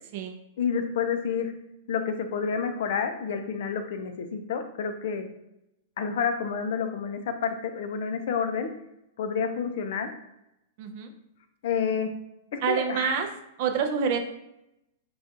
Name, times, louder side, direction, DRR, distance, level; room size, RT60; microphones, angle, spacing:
voice 1, 0.6-1.5 1.9-5.3 6.0-8.7 9.2-10.1 11.6-12.1 12.5-13.1, left 6 dB, 55° left, 7 dB, 0.4 m, -29 dB
voice 2, 10.8-11.1 12.6-13.3 13.6-14.2, right 7 dB, 40° right, 5 dB, 0.4 m, -27 dB
5.0 x 2.3 x 2.7 m, 0.86 s
supercardioid pair, 175°, 0 cm